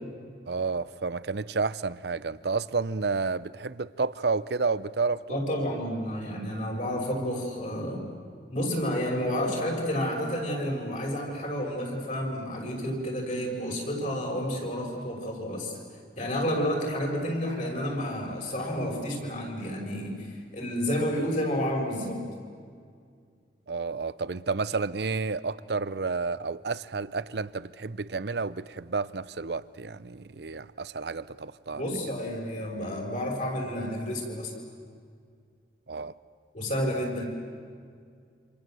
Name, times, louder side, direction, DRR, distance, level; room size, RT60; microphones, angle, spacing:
voice 1, 0.5-5.6 23.7-31.8 35.9-36.1, right 4 dB, 65° right, 17 dB, 0.7 m, -31 dB
voice 2, 5.3-8.1 8.5-15.8 16.2-22.2 31.7-34.5 36.5-37.3, equal, 45° left, 1 dB, 6.2 m, -30 dB
28.0 x 27.0 x 7.8 m, 2.1 s
head